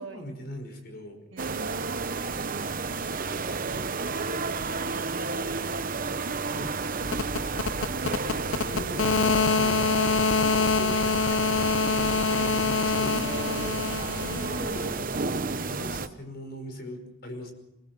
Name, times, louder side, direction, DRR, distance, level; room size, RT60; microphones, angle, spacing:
voice 1, 0.0-1.2 3.7-4.0 6.5-6.7 7.9-9.9 10.4-11.1 11.8-13.5 14.2-17.5, equal, 55° left, 6 dB, 5.3 m, -40 dB
voice 2, 1.3-7.5 13.1-13.8 15.8-16.2, right 1 dB, 70° right, 5 dB, 2.4 m, -42 dB
sound 1, 1.4-16.1, right 4 dB, 45° right, 1.0 m, -32 dB
sound 2, 7.0-14.9, left 4 dB, 80° left, 0.9 m, -26 dB
24.0 x 21.0 x 6.1 m, 0.86 s
head